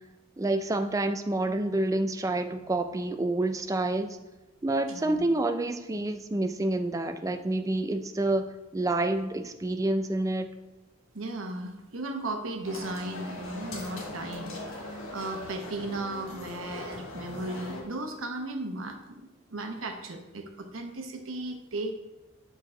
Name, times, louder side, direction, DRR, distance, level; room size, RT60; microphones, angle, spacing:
voice 1, 0.4-4.2 4.6-8.5 8.7-10.5, right 2 dB, 15° right, 8 dB, 0.3 m, -28 dB
voice 2, 4.9-5.2 11.1-21.9, right 2 dB, 80° right, 4 dB, 0.9 m, -36 dB
sound 1, 12.6-17.8, left 2 dB, 85° left, 1.3 m, -40 dB
6.5 x 4.6 x 3.8 m, 1.1 s
head